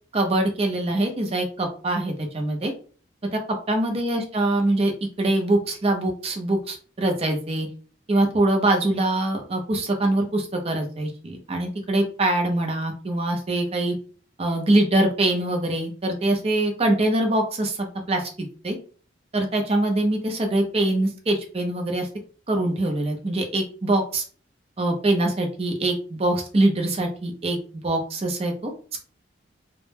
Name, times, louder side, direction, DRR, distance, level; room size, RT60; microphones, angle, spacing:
voice 1, 0.1-2.7 3.3-3.4 3.7-4.9 5.2-7.7 8.1-13.9 14.4-18.3 18.6-18.8 19.3-22.1 22.5-24.2 24.8-28.7, right 1 dB, 30° right, 4 dB, 0.5 m, -23 dB
2.1 x 2.1 x 3.2 m, 0.41 s
head